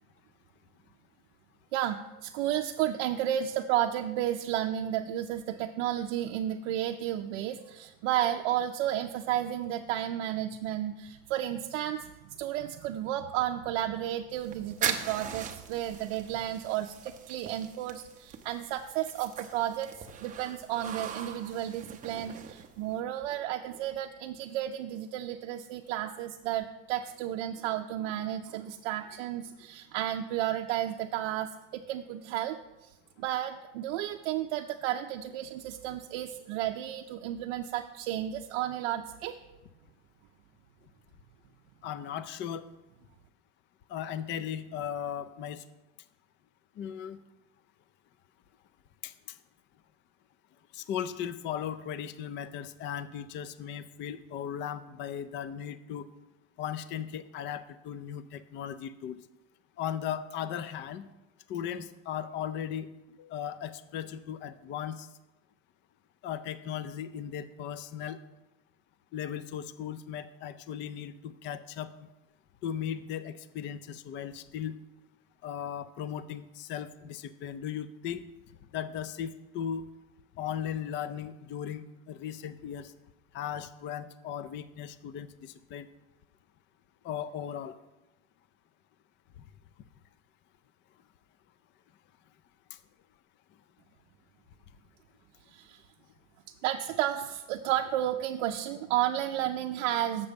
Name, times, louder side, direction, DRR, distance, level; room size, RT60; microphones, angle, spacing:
voice 1, 1.7-32.6 32.8-39.4 95.5-95.8 96.6-100.3, right 12 dB, 65° right, 3 dB, 0.6 m, -32 dB
sound 1, 14.3-23.0, right 8 dB, 20° right, 0.6 m, -40 dB
voice 2, 41.8-42.7 43.9-45.6 46.8-47.2 49.0-49.4 50.7-56.1 56.6-59.2 59.8-61.1 61.5-62.9 63.2-65.1 66.2-68.2 69.1-71.9 72.6-74.8 75.4-78.2 78.7-79.8 80.4-82.9 83.3-85.9 87.0-87.8, left 9 dB, 30° left, 14 dB, 0.4 m, -37 dB
7.0 x 6.7 x 5.2 m, 1.0 s
supercardioid pair, 125°, 38 cm